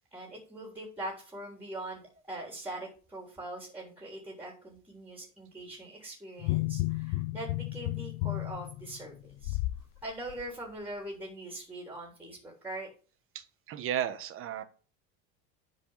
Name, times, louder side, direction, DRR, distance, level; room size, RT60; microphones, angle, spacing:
voice 1, 0.1-9.6 10.0-12.9, right 1 dB, 5° right, 1 dB, 3.4 m, -42 dB
sound 1, 6.4-9.8 10.3-10.4, left 19 dB, 80° left, 0.6 m, -32 dB
voice 2, 13.3-14.6, right 10 dB, 45° right, 10 dB, 1.3 m, -34 dB
10.5 x 4.8 x 5.7 m, 0.38 s
cardioid pair, 150°, 30 cm